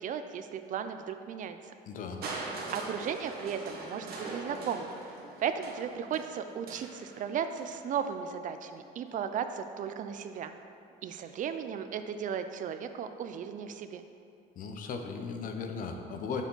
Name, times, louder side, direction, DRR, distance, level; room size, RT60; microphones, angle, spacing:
voice 1, 0.0-1.6 2.3-4.9 5.4-10.5 11.0-14.0, right 8 dB, 50° right, 9 dB, 0.4 m, -36 dB
voice 2, 1.9-2.2 14.6-16.5, left 5 dB, 55° left, 5 dB, 0.6 m, -37 dB
Crushing, 2.2-8.1 9.1-9.2, right 3 dB, 65° right, 1.1 m, -42 dB
7.0 x 4.5 x 3.9 m, 2.5 s
cardioid pair, 110°, 17 cm